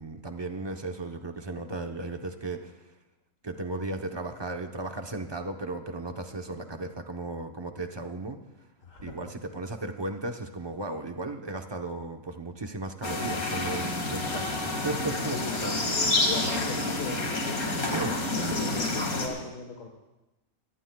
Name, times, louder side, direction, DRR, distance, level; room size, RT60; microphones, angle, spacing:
voice 1, 0.0-2.8 3.4-8.4 9.0-15.8 17.1-17.2 17.9-18.2, right 2 dB, 20° right, 5 dB, 0.8 m, -35 dB
voice 2, 8.8-9.2 15.3-15.7 16.2-17.9 18.3-19.9, left 4 dB, 65° left, 1 dB, 1.8 m, -38 dB
sound 1, 13.0-19.3, left 2 dB, 90° left, 2.6 m, -29 dB
23.5 x 17.0 x 2.3 m, 1.0 s
omnidirectional pair, 1.5 m